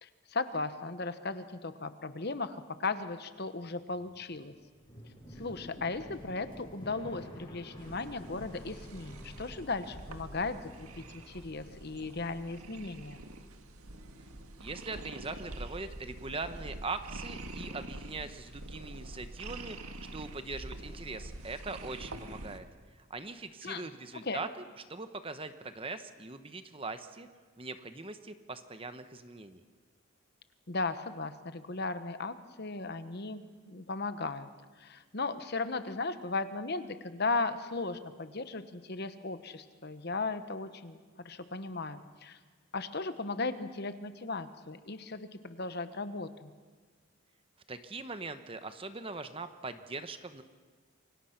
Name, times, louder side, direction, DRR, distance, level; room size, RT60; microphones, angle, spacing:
voice 1, 0.0-4.5 5.4-13.2 23.6-23.9 24.2-24.5 30.7-34.5 34.8-41.0 41.2-42.4 42.7-46.5, left 3 dB, 45° left, 11 dB, 1.1 m, -36 dB
sound 1, 3.9-13.6 13.8-14.7, equal, 20° left, 5.7 m, -51 dB
sound 2, 7.8-22.6, right 2 dB, 85° right, 1.8 m, -46 dB
voice 2, 14.6-22.7 23.1-24.6 24.9-27.3 27.6-29.6 47.7-50.4, right 3 dB, 25° right, 10 dB, 0.9 m, -41 dB
28.0 x 23.5 x 5.9 m, 1.5 s
head